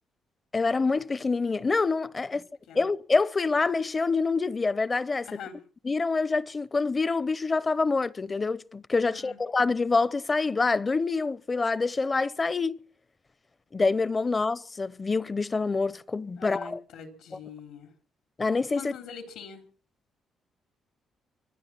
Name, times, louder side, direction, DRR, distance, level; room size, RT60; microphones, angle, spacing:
voice 1, 0.5-2.4 2.7-5.3 5.8-12.8 13.7-16.8 18.4-18.9, left 4 dB, 30° left, 0.7 m, -26 dB
voice 2, 9.1-9.4 16.4-17.9 18.8-19.6, left 6 dB, 85° left, 3.6 m, -43 dB
25.5 x 9.5 x 6.0 m
cardioid pair, 90°, 0 cm